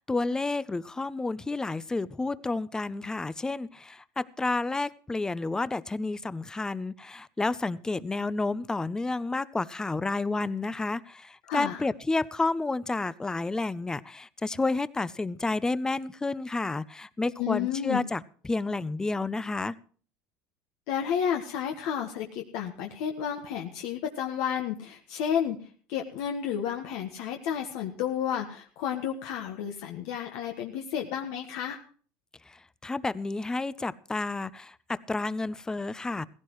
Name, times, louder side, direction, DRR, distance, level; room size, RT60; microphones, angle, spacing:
voice 1, 0.0-19.8 32.5-36.3, left 3 dB, 10° left, 18 dB, 0.6 m, -30 dB
voice 2, 11.5-11.8 17.4-18.0 20.9-31.8, left 9 dB, 70° left, 2 dB, 1.4 m, -31 dB
16.5 x 16.0 x 3.1 m, 0.43 s
supercardioid pair, 115°, 6 cm